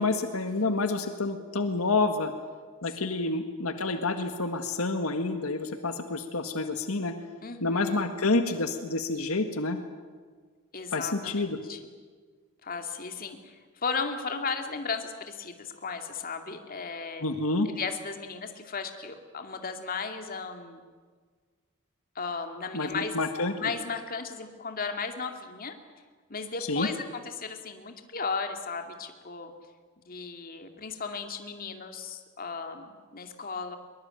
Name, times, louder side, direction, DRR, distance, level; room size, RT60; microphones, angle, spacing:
voice 1, 0.0-2.3 2.8-7.1 7.6-9.8 10.9-11.6 17.2-17.7 22.7-23.5 26.7-26.9, left 3 dB, 75° left, 7 dB, 1.7 m, -28 dB
voice 2, 3.0-3.5 7.4-8.1 10.7-11.8 12.6-17.3 17.8-20.8 22.2-23.1 23.6-25.7 26.3-29.5 30.1-33.8, left 5 dB, 40° left, 5 dB, 2.4 m, -35 dB
22.5 x 22.5 x 9.0 m, 1.5 s
head